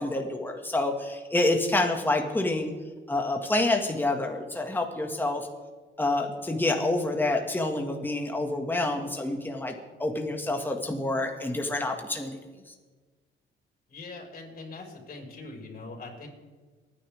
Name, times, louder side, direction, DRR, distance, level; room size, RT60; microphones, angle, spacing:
voice 1, 0.0-2.7 3.1-5.5 6.0-9.7 10.0-12.4, left 2 dB, 10° left, 2 dB, 2.0 m, -27 dB
voice 2, 13.9-16.3, left 3 dB, 45° left, 0 dB, 5.3 m, -42 dB
30.0 x 10.0 x 3.6 m, 1.4 s
cardioid pair, 90°, 20 cm